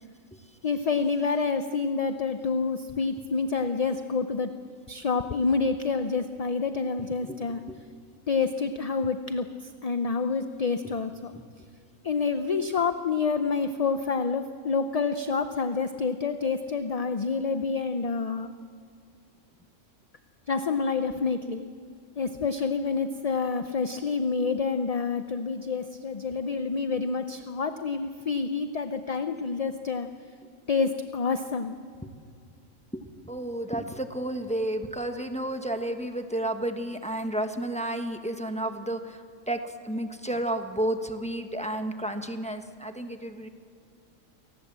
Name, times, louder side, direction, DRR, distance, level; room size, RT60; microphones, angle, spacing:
voice 1, 0.6-4.5 4.9-7.6 8.3-11.3 12.0-18.5 20.5-21.6 22.2-30.1 30.7-31.8, left 4 dB, 40° left, 9 dB, 0.6 m, -28 dB
voice 2, 32.9-39.6 39.8-43.5, right 1 dB, 5° left, 6 dB, 1.2 m, -31 dB
28.5 x 19.0 x 7.5 m, 2.3 s
omnidirectional pair, 1.4 m